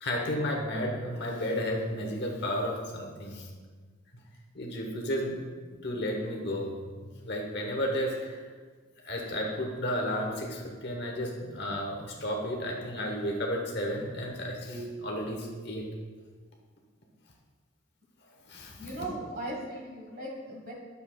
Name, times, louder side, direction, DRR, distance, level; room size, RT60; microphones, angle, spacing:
voice 1, 0.0-3.5 4.5-5.4 5.8-8.4 9.0-15.9 18.5-19.1, equal, 55° left, 0 dB, 1.1 m, -33 dB
voice 2, 18.8-20.7, right 1 dB, 45° right, -1 dB, 1.4 m, -38 dB
7.9 x 6.8 x 2.3 m, 1.5 s
head